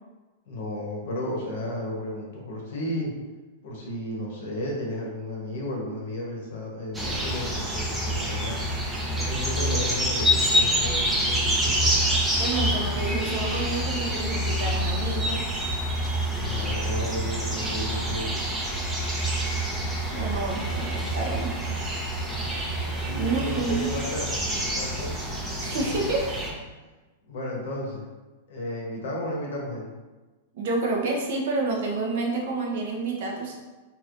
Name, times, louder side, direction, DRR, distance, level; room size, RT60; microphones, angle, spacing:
voice 1, 0.5-3.1 3.6-8.7 9.2-11.9 16.3-18.3 22.2-25.1 25.8-26.0 27.3-28.0 28.5-29.9, left 1 dB, 70° left, -2 dB, 0.9 m, -33 dB
sound 1, 6.9-26.5, equal, 10° right, 0.6 m, -27 dB
voice 2, 12.3-15.4 20.1-21.5 23.2-23.9 25.6-26.2 30.5-33.5, right 3 dB, 65° right, 0 dB, 0.7 m, -29 dB
3.0 x 2.8 x 2.5 m, 1.2 s
hypercardioid pair, 120°, 0 cm